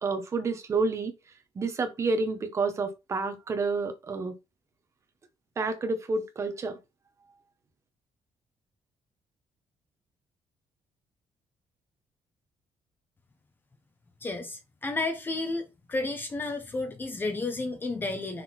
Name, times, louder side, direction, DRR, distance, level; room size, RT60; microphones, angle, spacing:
voice 1, 0.0-1.1 1.5-4.3 5.6-6.8, right 3 dB, 30° right, 1.2 m, -29 dB
voice 2, 14.2-18.4, left 2 dB, 20° left, 0.9 m, -32 dB
6.1 x 3.8 x 4.5 m
cardioid pair, 170°, 10 cm